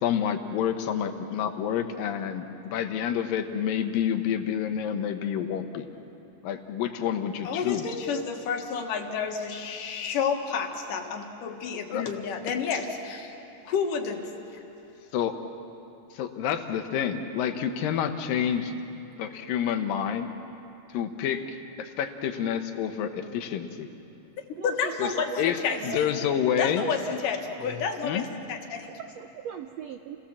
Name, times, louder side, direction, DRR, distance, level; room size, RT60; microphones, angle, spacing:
voice 1, 0.0-5.9 6.4-7.8 11.9-12.0 15.1-15.3 16.1-18.7 19.2-20.3 20.9-21.4 21.8-23.9 25.0-25.1 25.4-25.6 25.8-26.8 28.0-28.3, left 9 dB, 85° left, 7 dB, 2.8 m, -28 dB
voice 2, 7.4-13.3 13.7-14.6 24.6-26.1 26.6-28.9, left 6 dB, 70° left, 3 dB, 3.1 m, -30 dB
voice 3, 24.5-27.0 28.9-30.2, right 9 dB, 85° right, 5 dB, 1.5 m, -39 dB
29.0 x 18.0 x 7.4 m, 2.9 s
omnidirectional pair, 3.9 m